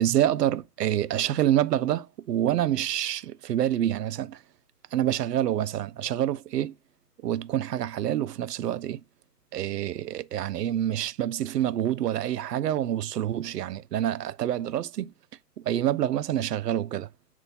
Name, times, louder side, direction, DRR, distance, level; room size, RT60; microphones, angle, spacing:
voice 1, 0.0-4.4 4.9-6.7 7.2-9.0 9.5-15.1 15.6-17.1, right 11 dB, 75° right, 0.6 m, -27 dB
6.9 x 2.5 x 5.5 m
hypercardioid pair, 175°, 48 cm